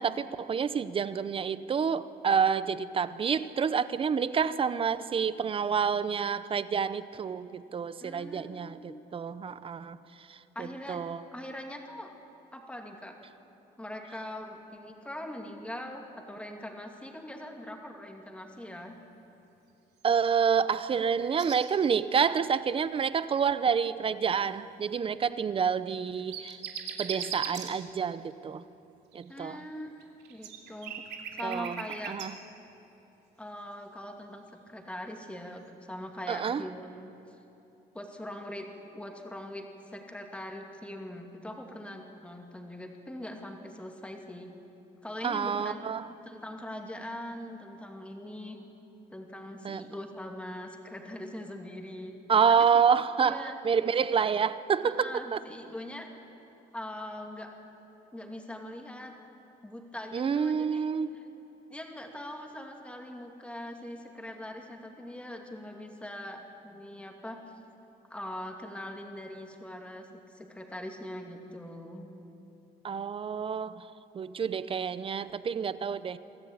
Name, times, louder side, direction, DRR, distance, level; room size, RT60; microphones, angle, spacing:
voice 1, 0.0-10.0 10.3-11.2 20.0-26.6 27.0-28.6 29.1-29.6 31.4-31.8 32.1-32.3 36.3-36.6 45.2-46.1 49.6-49.8 52.3-55.4 60.1-61.1 72.8-73.9 74.1-76.2, right 6 dB, 35° right, 15 dB, 0.7 m, -28 dB
voice 2, 8.0-8.9 10.5-11.0 11.3-12.1 12.5-13.2 13.8-19.0 29.3-31.0 31.3-32.2 33.4-37.1 37.9-38.7 38.9-44.5 45.0-48.6 49.1-52.1 52.5-52.8 53.2-53.6 54.8-56.1 56.7-57.5 58.1-59.2 59.6-60.9 61.1-61.2 61.7-67.4 68.1-72.1, left 1 dB, 5° left, 2 dB, 2.6 m, -42 dB
sound 1, 20.1-20.6 21.0-21.7 22.0-22.3 23.2-23.5 25.9-27.7 29.1-32.3, right 8 dB, 85° right, 2.5 m, -40 dB
24.0 x 14.0 x 8.7 m, 2.9 s
cardioid pair, 110°, 17 cm